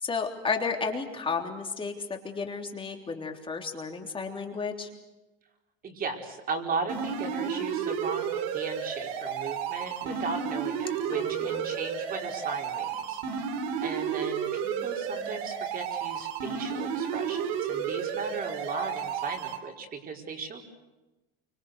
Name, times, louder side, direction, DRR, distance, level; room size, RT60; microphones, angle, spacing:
voice 1, 0.0-4.9 11.1-11.7, left 5 dB, 15° left, 3 dB, 3.4 m, -33 dB
voice 2, 5.8-13.2 13.8-20.8, right 4 dB, 30° right, 2 dB, 4.8 m, -36 dB
sound 1, 6.9-19.6, right 7 dB, 70° right, 3.5 m, -32 dB
29.0 x 25.5 x 6.8 m, 1.1 s
supercardioid pair, 140°, 30 cm